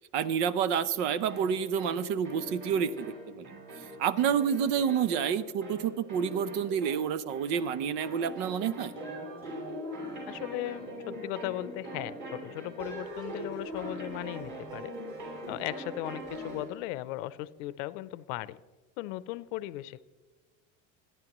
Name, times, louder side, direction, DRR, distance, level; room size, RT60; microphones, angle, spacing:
voice 1, 0.1-3.6 4.0-8.9, right 7 dB, 65° right, 15 dB, 0.9 m, -29 dB
sound 1, 1.3-16.8, right 1 dB, 35° right, 5.6 m, -42 dB
voice 2, 10.3-14.9 15.5-18.6 19.0-20.0, left 16 dB, 85° left, 16 dB, 0.7 m, -37 dB
28.5 x 10.5 x 3.1 m, 1.3 s
cardioid pair, 165°, 37 cm